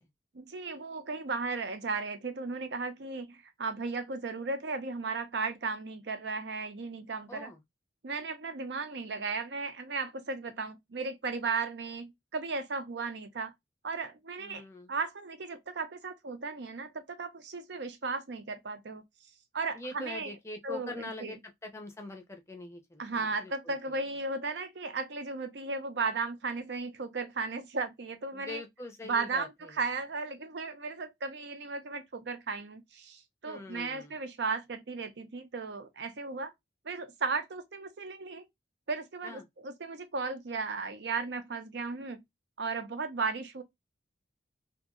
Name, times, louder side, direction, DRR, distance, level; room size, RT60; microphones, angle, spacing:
voice 1, 0.3-7.5 8.0-13.5 13.8-19.0 19.5-20.3 20.6-21.4 23.0-28.6 29.0-36.5 36.8-38.5 38.9-42.2 42.6-43.6, right 4 dB, 70° right, 0.6 m, -35 dB
voice 2, 7.3-7.6 10.5-10.6 14.4-14.9 19.7-23.7 28.3-29.5 33.4-34.1 39.2-39.5, left 2 dB, 15° left, 0.5 m, -43 dB
2.8 x 2.6 x 2.5 m
head